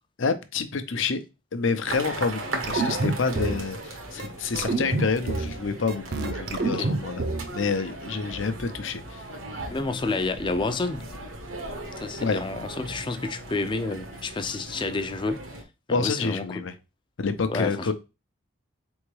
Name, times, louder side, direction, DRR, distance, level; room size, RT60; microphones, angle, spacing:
voice 1, 0.2-1.2 1.5-7.2 7.5-9.3 12.2-12.4 15.9-16.7 17.2-17.9, left 4 dB, 70° left, 0.7 m, -28 dB
sound 1, 1.8-15.6, right 2 dB, 80° right, 1.2 m, -37 dB
sound 2, 2.6-3.6 4.2-4.3 4.6-5.6 5.9-7.5, right 3 dB, 50° right, 0.6 m, -27 dB
voice 2, 6.6-6.9 9.7-11.1 11.7-15.4 15.9-16.6 17.5-17.9, left 3 dB, 25° left, 0.4 m, -30 dB
4.4 x 3.6 x 3.2 m
head